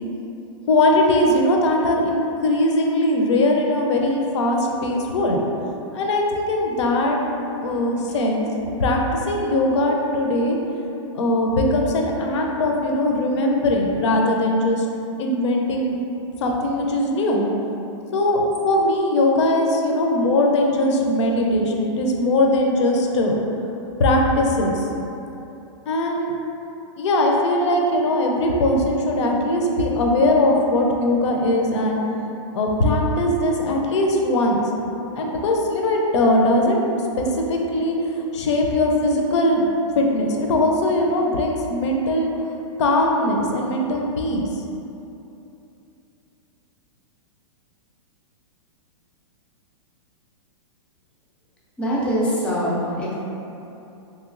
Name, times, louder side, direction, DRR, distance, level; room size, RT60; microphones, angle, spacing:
voice 1, 0.7-5.4 5.9-7.2 7.6-8.5 8.8-9.0 9.3-10.6 11.1-14.9 15.2-16.0 16.4-17.5 18.1-23.4 24.0-24.8 25.9-26.3 27.0-32.0 32.5-34.6 35.1-36.9 37.2-39.6 40.0-42.3 42.8-44.5, left 1 dB, 60° left, 1 dB, 0.5 m, -20 dB
voice 2, 51.8-53.1, equal, 5° left, -7 dB, 0.3 m, -23 dB
3.1 x 3.0 x 2.4 m, 2.9 s
hypercardioid pair, 155°, 17 cm